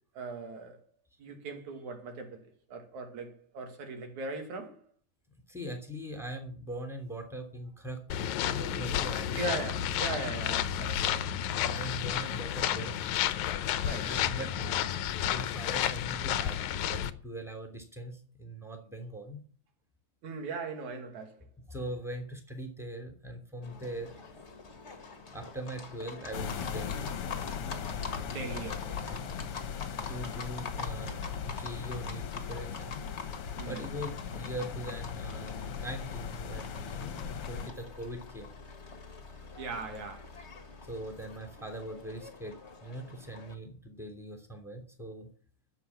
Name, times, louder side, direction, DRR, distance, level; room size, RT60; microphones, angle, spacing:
voice 1, 0.2-0.8 1.2-4.8 9.4-11.3 13.8-14.1 20.2-21.5 28.3-29.0 33.6-33.8 39.6-40.3, right 3 dB, 80° right, 3.7 m, -39 dB
voice 2, 5.5-9.6 11.6-13.2 14.0-19.4 21.7-24.1 25.3-27.1 29.2-29.4 30.1-33.0 33.6-38.5 40.9-45.3, right 1 dB, ahead, 2.7 m, -41 dB
sound 1, 8.1-17.1, left 10 dB, 85° left, 2.2 m, -31 dB
Livestock farm animals working animals, 23.6-43.5, left 4 dB, 30° left, 1.5 m, -45 dB
sound 2, 26.3-37.7, left 7 dB, 60° left, 1.9 m, -38 dB
13.0 x 7.8 x 7.6 m
omnidirectional pair, 3.3 m